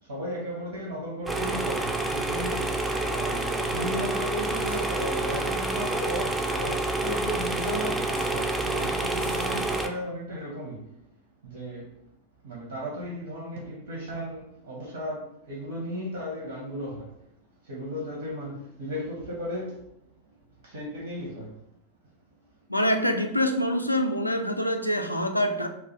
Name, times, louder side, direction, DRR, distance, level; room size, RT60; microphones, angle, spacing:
voice 1, 0.0-10.9 11.4-11.9 12.4-17.2 17.6-19.8 20.3-21.5, equal, 65° right, 0.8 m, -35 dB
sound 1, 1.3-9.9, right 2 dB, 10° right, 0.3 m, -28 dB
sound 2, 4.6-9.7, equal, 90° right, 1.1 m, -44 dB
voice 2, 22.7-25.7, equal, 90° left, 0.3 m, -25 dB
2.5 x 2.3 x 3.9 m
figure-of-eight pair, 90°, 0 cm